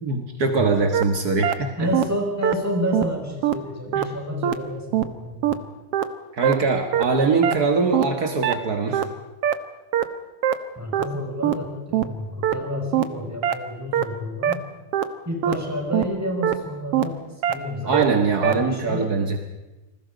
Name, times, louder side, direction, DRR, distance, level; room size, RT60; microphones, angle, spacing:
voice 1, 0.0-1.7 4.0-4.1 6.4-9.0 17.9-19.4, right 4 dB, 60° right, 5 dB, 0.9 m, -22 dB
sound 1, 0.9-1.0 1.4-1.5 1.9-2.0 2.4-2.5 2.9-3.0 3.4-3.5 3.9-4.0 4.4-4.5 4.9-5.0 5.4-5.5 5.9-6.0 6.4-6.5 6.9-7.0 7.4-7.5 7.9-8.0 8.4-8.5 8.9-9.0 9.4-9.5 9.9-10.0 10.4-10.5 10.9-11.0 11.4-11.5 11.9-12.0 12.4-12.5 12.9-13.0 13.4-13.5 13.9-14.0 14.4-14.5 14.9-15.0 15.4-15.5 15.9-16.0 16.4-16.5 16.9-17.0 17.4-17.5 17.9-18.0 18.4-18.5, right 11 dB, 90° right, 1.3 m, -21 dB
voice 2, 1.8-5.5 10.8-14.6 15.3-19.1, left 1 dB, 5° right, 0 dB, 5.3 m, -30 dB
29.0 x 21.0 x 5.2 m, 1.1 s
omnidirectional pair, 4.3 m